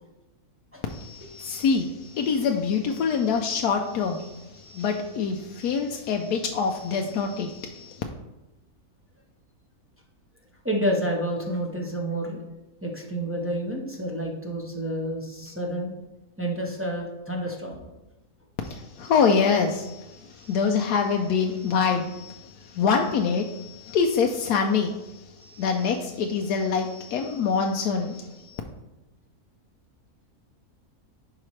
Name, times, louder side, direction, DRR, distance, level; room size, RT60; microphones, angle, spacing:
voice 1, 0.9-8.0 18.6-28.6, left 5 dB, 90° left, 3 dB, 1.2 m, -25 dB
voice 2, 10.6-12.4 12.8-15.9 16.4-17.8, right 1 dB, 10° right, -2 dB, 1.0 m, -29 dB
10.5 x 4.9 x 3.2 m, 1.0 s
omnidirectional pair, 1.6 m